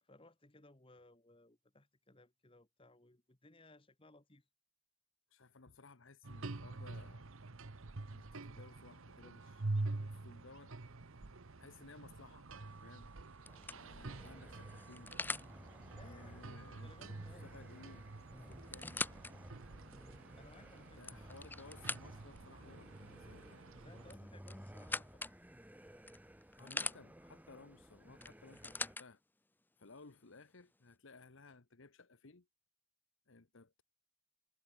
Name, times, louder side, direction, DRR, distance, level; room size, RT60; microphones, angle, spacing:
voice 1, 0.0-4.5 15.9-17.5 20.4-21.1 23.8-25.2, left 2 dB, 25° left, 1.6 m, -62 dB
voice 2, 5.3-7.4 8.0-10.7 11.6-13.1 13.7-15.2 16.0-17.2 17.4-19.0 21.0-23.8 26.6-29.2 29.8-32.5 33.3-33.8, left 3 dB, 65° left, 1.1 m, -59 dB
sound 1, 6.2-24.1, right 2 dB, 70° right, 1.0 m, -47 dB
sound 2, 12.6-12.9 13.5-15.5 17.5-17.7 17.9-18.0 18.5-19.3 19.9-20.0 20.8-22.4 24.0-25.4 26.1-27.0 28.2-29.1 30.0-30.1, left 3 dB, 10° left, 0.5 m, -43 dB
sound 3, 13.5-29.0, equal, 5° right, 1.7 m, -57 dB
head